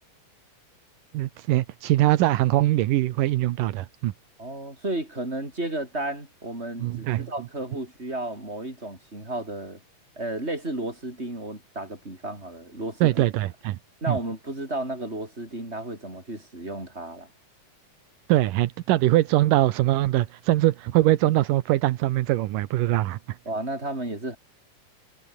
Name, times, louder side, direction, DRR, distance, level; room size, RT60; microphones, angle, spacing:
voice 1, 1.1-4.1 6.8-7.3 13.0-13.8 14.1-14.2 18.3-23.2, right 15 dB, 85° right, 2.6 m, -22 dB
voice 2, 4.4-9.8 10.2-13.2 14.0-17.3 23.5-24.4, right 1 dB, 20° right, 8.0 m, -33 dB
omnidirectional pair, 3.7 m